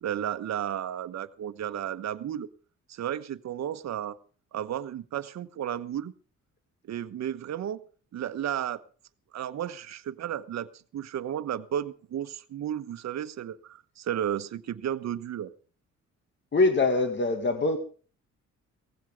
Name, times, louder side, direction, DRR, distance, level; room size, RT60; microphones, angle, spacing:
voice 1, 0.0-2.5 2.9-4.2 4.5-6.1 6.9-7.8 8.1-8.8 9.3-15.5, right 10 dB, 60° right, 1.2 m, -33 dB
voice 2, 16.5-17.8, left 3 dB, 40° left, 2.0 m, -23 dB
18.0 x 15.5 x 3.6 m
cardioid pair, 90°, 30 cm